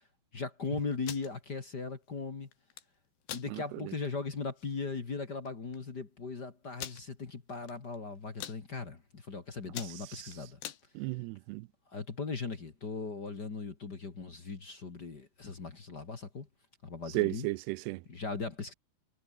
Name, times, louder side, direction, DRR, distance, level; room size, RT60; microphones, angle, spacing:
voice 1, 0.3-2.5 3.3-10.6 11.9-16.5 16.8-17.5 18.1-18.7, left 4 dB, 30° left, 2.1 m, -38 dB
sound 1, 0.9-1.3 2.5-2.8 3.2-3.5 4.0-4.1 4.4-4.7 5.5-5.6 5.7-5.8 6.8-7.0 7.6-8.0 8.2-8.6 9.1-9.3 9.6-10.8, left 11 dB, 85° left, 4.1 m, -42 dB
voice 2, 3.5-3.9 10.1-10.3 11.0-11.7 17.1-18.0, right 22 dB, 85° right, 2.7 m, -34 dB
omnidirectional pair, 4.7 m